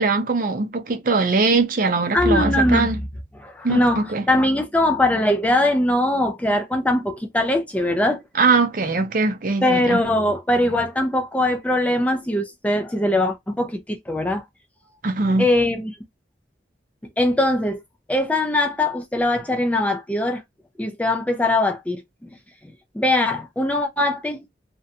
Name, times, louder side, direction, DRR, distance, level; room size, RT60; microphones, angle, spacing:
voice 1, 0.0-3.0 3.6-4.3 8.4-10.0 15.0-15.5, right 3 dB, 50° right, 0.5 m, -21 dB
voice 2, 2.1-2.9 3.4-8.2 9.6-14.4 15.4-16.0 17.2-17.8 18.1-20.4 20.8-22.4 22.9-24.4, left 1 dB, 10° left, 0.3 m, -21 dB
2.6 x 2.2 x 2.5 m
head